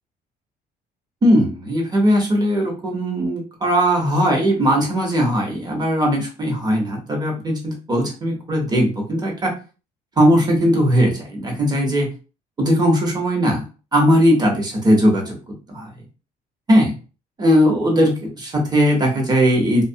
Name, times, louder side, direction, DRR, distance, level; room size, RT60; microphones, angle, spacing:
voice 1, 1.2-9.5 10.2-12.1 12.6-13.6 13.9-15.4 15.7-15.9 16.7-16.9 17.4-19.8, equal, 25° right, 0 dB, 0.9 m, -18 dB
2.3 x 2.1 x 2.6 m, 0.34 s
cardioid pair, 110°, 17 cm